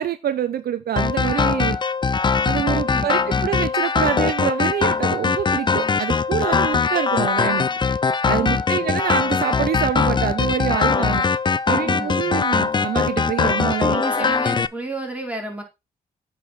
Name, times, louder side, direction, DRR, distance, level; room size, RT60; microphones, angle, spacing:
voice 1, 0.0-1.8 2.5-7.7 8.3-11.3 11.7-14.3, right 10 dB, 65° right, 0.6 m, -26 dB
sound 1, 1.0-14.7, left 5 dB, 25° left, 0.4 m, -21 dB
voice 2, 2.6-3.6 8.4-9.0 11.8-12.3 13.8-15.6, right 2 dB, 10° right, 3.8 m, -32 dB
8.2 x 5.0 x 4.1 m
supercardioid pair, 55°, 17 cm